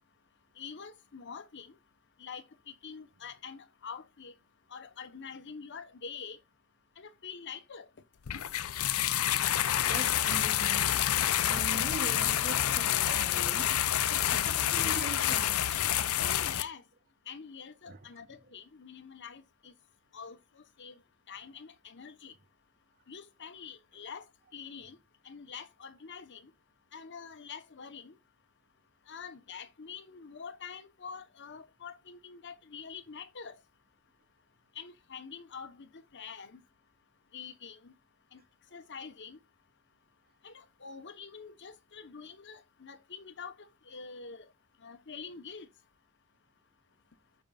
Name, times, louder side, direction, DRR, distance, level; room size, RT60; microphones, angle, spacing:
voice 1, 0.6-1.8 2.2-4.3 4.7-6.4 7.0-7.9 16.2-16.8 17.3-19.7 20.1-21.0 21.3-22.3 23.1-24.3 24.5-25.0 25.2-26.5 26.9-28.2 29.1-33.6 34.7-36.6 37.3-37.9 38.3-38.4 38.7-39.4 40.4-44.5 44.8-45.7, left 6 dB, 55° left, 1.0 m, -46 dB
sound 1, 8.3-16.6, left 11 dB, 75° left, 0.6 m, -28 dB
voice 2, 9.8-11.1 11.4-13.8 14.1-15.9 16.1-16.2 17.9-18.5, right 3 dB, 45° right, 0.7 m, -43 dB
14.0 x 5.4 x 2.4 m
head